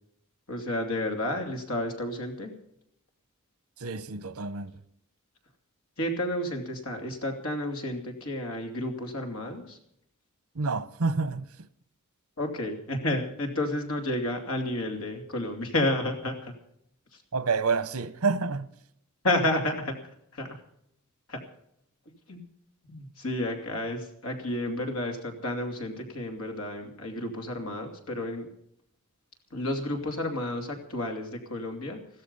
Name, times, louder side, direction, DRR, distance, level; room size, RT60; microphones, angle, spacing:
voice 1, 0.5-2.6 6.0-9.8 12.4-16.6 17.1-17.2 19.2-20.6 21.3-21.4 22.3-22.4 22.9-28.5 29.5-32.1, left 1 dB, 75° left, 2.8 m, -31 dB
voice 2, 3.8-4.7 10.5-11.5 17.3-18.7, right 4 dB, 75° right, 0.9 m, -28 dB
15.0 x 13.5 x 5.4 m
head